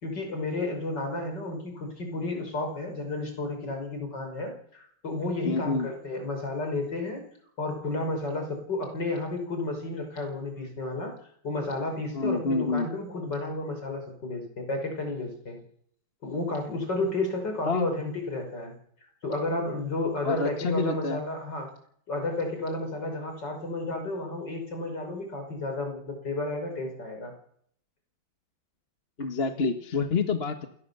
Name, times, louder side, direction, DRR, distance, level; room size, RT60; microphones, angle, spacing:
voice 1, 0.0-7.2 7.6-11.1 11.4-15.6 16.2-18.7 19.2-21.7 22.1-27.3, left 2 dB, 55° left, 4 dB, 6.1 m, -32 dB
voice 2, 5.4-5.9 12.1-12.9 17.7-17.9 20.2-21.2 29.2-30.7, left 4 dB, 30° left, 7 dB, 1.7 m, -27 dB
27.5 x 19.5 x 7.0 m, 0.67 s
omnidirectional pair, 2.2 m